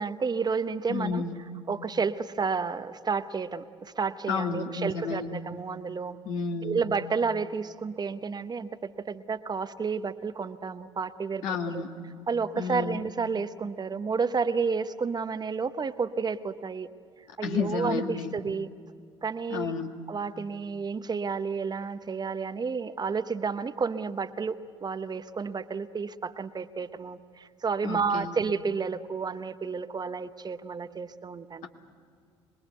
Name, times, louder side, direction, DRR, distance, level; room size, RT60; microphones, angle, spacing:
voice 1, 0.0-1.2 1.7-6.2 6.6-11.8 12.3-16.9 17.4-18.7 19.2-19.7 20.1-24.6 24.8-31.7, right 5 dB, 30° right, 11 dB, 1.0 m, -31 dB
voice 2, 0.9-1.4 4.3-5.4 6.2-6.8 11.4-11.9 12.6-13.0 17.4-18.3 19.5-19.9 27.8-28.3, left 5 dB, 65° left, 3 dB, 2.1 m, -31 dB
26.0 x 21.5 x 8.2 m, 2.2 s
figure-of-eight pair, 55°, 15 cm